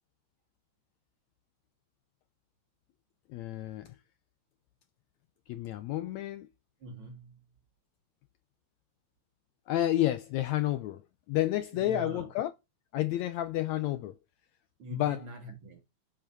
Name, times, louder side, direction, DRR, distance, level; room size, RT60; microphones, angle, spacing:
voice 1, 3.3-3.9 5.5-6.5 9.7-11.0 11.3-12.5 12.9-14.1 14.9-15.2, left 14 dB, 80° left, 1.7 m, -30 dB
voice 2, 6.8-7.5 11.7-12.3 14.8-15.8, right 2 dB, 50° right, 1.7 m, -44 dB
7.5 x 7.4 x 4.0 m
omnidirectional pair, 3.7 m